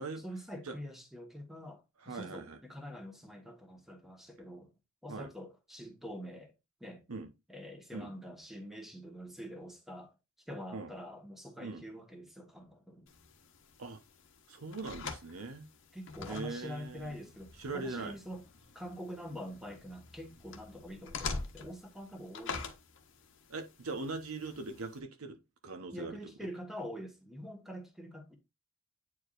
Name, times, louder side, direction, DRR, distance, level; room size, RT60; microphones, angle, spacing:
voice 1, 0.0-4.7 5.0-6.5 6.8-7.0 7.5-10.1 10.5-13.1 15.9-18.4 18.7-22.7 25.9-28.4, equal, ahead, 1.3 m, -45 dB
voice 2, 2.0-2.6 5.1-5.3 7.1-7.3 7.9-8.1 10.7-10.9 11.6-11.8 13.8-14.0 14.5-15.7 16.3-17.2 17.6-18.2 23.5-25.4 25.6-26.3, right 3 dB, 80° right, 1.0 m, -41 dB
sound 1, 13.1-25.0, left 4 dB, 60° left, 1.0 m, -46 dB
8.6 x 4.7 x 2.5 m
head